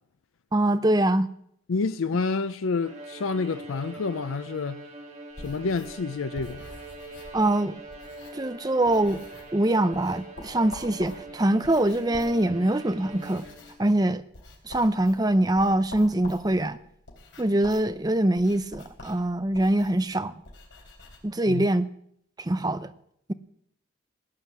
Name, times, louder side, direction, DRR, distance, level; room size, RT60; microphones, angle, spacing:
voice 1, 0.5-1.3 7.3-7.8 8.3-9.2 9.5-13.5 13.8-14.2 14.6-16.8 17.4-20.3 21.2-21.9 22.4-22.9, right 1 dB, 20° right, 0.6 m, -23 dB
voice 2, 1.7-4.8 5.4-6.7 21.5-21.7, left 4 dB, 90° left, 0.5 m, -28 dB
Bowed string instrument, 2.8-13.9, right 2 dB, 35° right, 2.2 m, -43 dB
sound 1, 5.3-8.6 8.8-9.6 9.9-21.2, left 2 dB, 60° left, 3.8 m, -47 dB
17.5 x 9.6 x 7.2 m
head